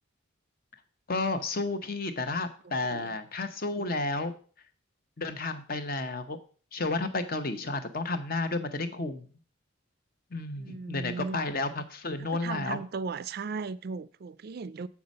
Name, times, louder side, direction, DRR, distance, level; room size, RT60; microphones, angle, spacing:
voice 1, 1.1-4.3 5.2-6.4 6.7-9.3 10.3-12.8, left 3 dB, 45° left, 0.9 m, -32 dB
voice 2, 2.6-3.1 10.6-11.6 12.2-14.9, right 4 dB, 50° right, 0.4 m, -37 dB
7.3 x 5.8 x 5.3 m
head